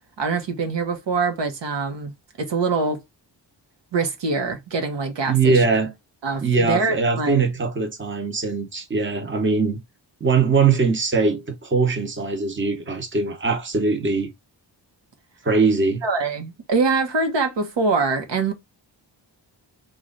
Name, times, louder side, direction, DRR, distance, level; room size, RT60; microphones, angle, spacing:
voice 1, 0.2-2.1 2.4-3.0 3.9-5.6 6.2-7.5 16.0-18.5, right 4 dB, 80° right, 1.1 m, -24 dB
voice 2, 5.3-5.9 6.4-9.8 10.2-14.3 15.4-16.0, right 4 dB, 25° right, 1.0 m, -21 dB
3.1 x 2.5 x 3.8 m
wide cardioid pair, 105°, 43 cm